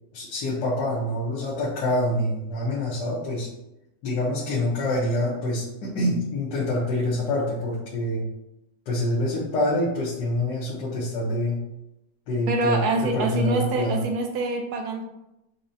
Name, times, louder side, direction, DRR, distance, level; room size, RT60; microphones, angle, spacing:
voice 1, 0.1-3.5 4.0-8.3 8.9-11.6 12.3-14.0, left 1 dB, 85° left, -7 dB, 1.5 m, -26 dB
voice 2, 12.5-15.0, right 2 dB, 75° right, 3 dB, 1.1 m, -25 dB
5.9 x 2.1 x 2.6 m, 0.89 s
omnidirectional pair, 1.8 m